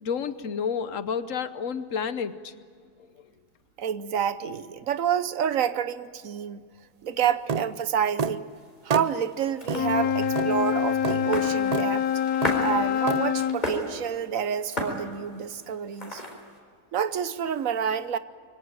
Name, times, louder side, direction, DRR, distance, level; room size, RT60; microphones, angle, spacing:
voice 1, 0.0-2.5, left 6 dB, 65° left, 13 dB, 1.3 m, -30 dB
voice 2, 3.8-6.6 7.0-8.5 8.8-12.1 12.6-16.2 16.9-18.2, right 8 dB, 70° right, 14 dB, 1.2 m, -28 dB
sound 1, 7.5-7.7 8.2-8.4 8.9-9.1 9.7-9.8 10.4-10.5 11.0-11.2 11.7-11.9 12.4-12.6 13.1-13.2, right 6 dB, 50° right, 0.5 m, -28 dB
sound 2, 8.5-16.6, left 1 dB, 30° left, 4.2 m, -36 dB
Wind instrument woodwind instrument, 9.6-13.6, left 9 dB, 90° left, 1.3 m, -26 dB
24.0 x 17.5 x 9.0 m, 2.1 s
omnidirectional pair, 1.5 m